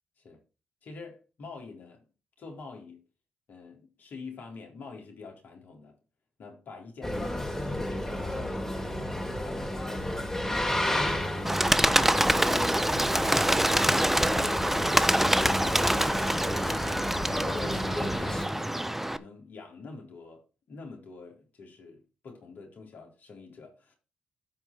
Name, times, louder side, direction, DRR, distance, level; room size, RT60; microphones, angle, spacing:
voice 1, 0.8-2.1 2.4-3.0 3.5-6.0 6.4-10.0 10.4-10.9 16.4-18.8 19.2-23.9, left 4 dB, 60° left, 3.8 m, -46 dB
Boat Water vehicle, 7.0-18.5, left 1 dB, 10° left, 3.4 m, -32 dB
Bird, 11.5-19.2, right 1 dB, 5° right, 0.9 m, -25 dB
13.5 x 4.8 x 4.5 m
hypercardioid pair, 50°, 3 cm